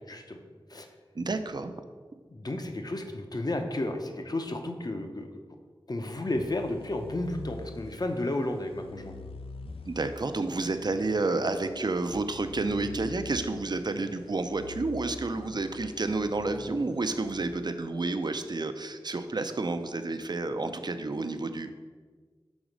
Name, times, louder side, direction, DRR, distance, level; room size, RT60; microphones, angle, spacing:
voice 1, 0.1-0.4 0.7-0.9 2.3-5.3 5.9-9.1, left 1 dB, 45° left, 5 dB, 0.7 m, -32 dB
voice 2, 1.1-1.7 9.8-21.7, right 3 dB, 50° right, 9 dB, 0.4 m, -30 dB
sound 1, 6.3-18.2, left 3 dB, 80° left, 0.3 m, -46 dB
6.2 x 4.0 x 5.1 m, 1.5 s
wide cardioid pair, 55°, 9 cm